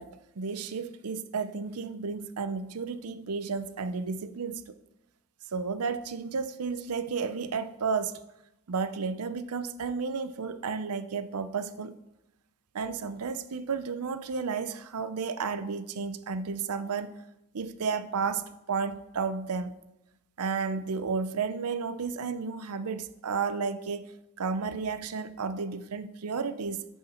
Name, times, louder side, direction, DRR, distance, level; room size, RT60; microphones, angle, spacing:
voice 1, 0.0-4.7 5.5-8.2 8.7-11.9 12.7-17.2 17.5-19.8 20.4-24.1 24.4-26.9, right 5 dB, 75° right, 13 dB, 0.6 m, -32 dB
9.6 x 6.9 x 4.3 m, 0.89 s
head